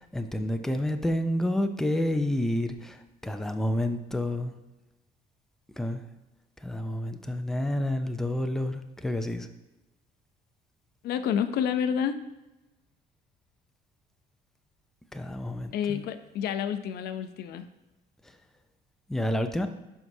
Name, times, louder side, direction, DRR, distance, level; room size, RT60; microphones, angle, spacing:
voice 1, 0.0-4.5 5.8-6.0 6.6-9.5 15.1-16.0 19.1-19.7, left 1 dB, ahead, 7 dB, 0.5 m, -29 dB
voice 2, 11.0-12.2 15.7-17.7, left 8 dB, 75° left, 10 dB, 0.5 m, -29 dB
11.5 x 4.6 x 2.7 m, 1.0 s
cardioid pair, 110°, 17 cm